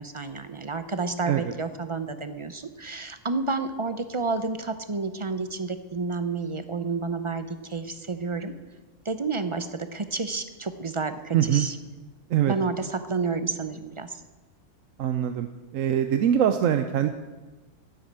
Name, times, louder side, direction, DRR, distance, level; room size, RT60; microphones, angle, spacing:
voice 1, 0.0-8.5 9.1-11.8 12.5-14.2, right 4 dB, 35° right, 10 dB, 0.5 m, -30 dB
voice 2, 11.3-11.7 12.3-12.5 15.0-15.5 15.7-17.1, right 10 dB, 80° right, 8 dB, 1.0 m, -23 dB
9.9 x 8.0 x 8.6 m, 1.2 s
omnidirectional pair, 1.4 m